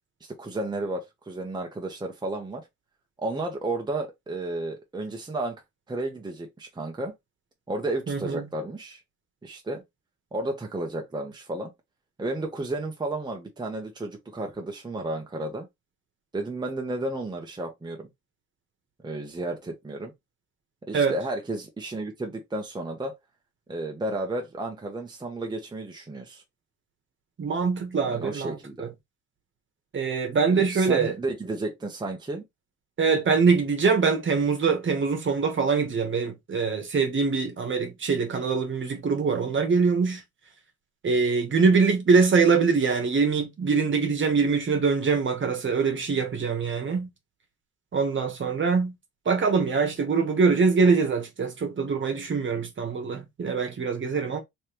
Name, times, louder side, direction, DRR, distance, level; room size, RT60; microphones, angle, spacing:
voice 1, 0.3-2.6 3.2-5.6 5.9-7.1 7.7-9.0 9.4-9.8 10.3-11.7 12.2-15.7 16.3-18.1 19.0-20.1 20.9-23.1 23.7-26.4 28.0-28.9 30.5-32.4, right 2 dB, 15° right, 0.9 m, -32 dB
voice 2, 8.1-8.4 20.9-21.2 27.4-28.9 29.9-31.2 33.0-40.2 41.0-47.1 47.9-48.9 49.2-54.4, right 5 dB, 40° right, 1.2 m, -23 dB
3.3 x 3.2 x 2.9 m
cardioid pair, 90°, 30 cm